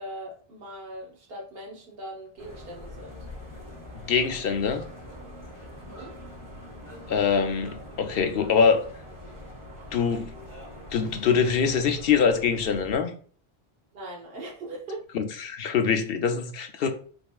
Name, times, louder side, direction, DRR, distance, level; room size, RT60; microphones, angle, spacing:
voice 1, 0.0-3.2 5.8-6.1 13.9-15.0, right 1 dB, 65° right, 1.4 m, -40 dB
sound 1, 2.4-13.0, left 1 dB, 20° left, 1.7 m, -43 dB
voice 2, 4.1-4.8 7.1-8.8 9.9-10.3 10.9-13.1 15.1-16.9, left 6 dB, 70° left, 0.8 m, -24 dB
5.3 x 3.4 x 2.3 m
omnidirectional pair, 1.0 m